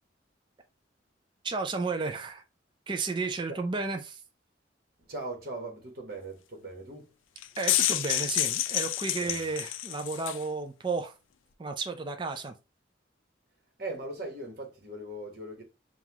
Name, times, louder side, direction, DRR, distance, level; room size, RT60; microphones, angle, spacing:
voice 1, 1.4-2.4 2.9-4.2 7.6-11.1 11.6-12.5, right 4 dB, 25° right, 0.4 m, -33 dB
voice 2, 5.1-7.1 9.2-9.5 13.8-15.6, right 2 dB, 50° right, 1.3 m, -39 dB
sound 1, 7.4-10.4, left 13 dB, 90° left, 0.4 m, -29 dB
5.6 x 2.4 x 2.9 m
head